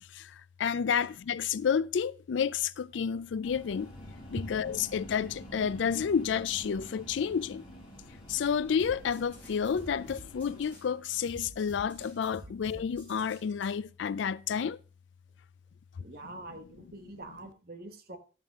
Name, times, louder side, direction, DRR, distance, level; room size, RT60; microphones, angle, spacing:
voice 1, 0.1-3.9 4.3-7.6 8.3-14.8, left 7 dB, 75° left, 0.4 m, -30 dB
sound 1, 2.9-14.1 14.5-14.6, equal, 50° left, 2.1 m, -51 dB
sound 2, 3.4-10.7, equal, 30° left, 5.4 m, -53 dB
sound 3, 8.8-13.7, equal, 5° left, 4.1 m, -49 dB
voice 2, 16.0-18.2, right 2 dB, 50° right, 1.2 m, -45 dB
12.0 x 7.3 x 3.6 m
head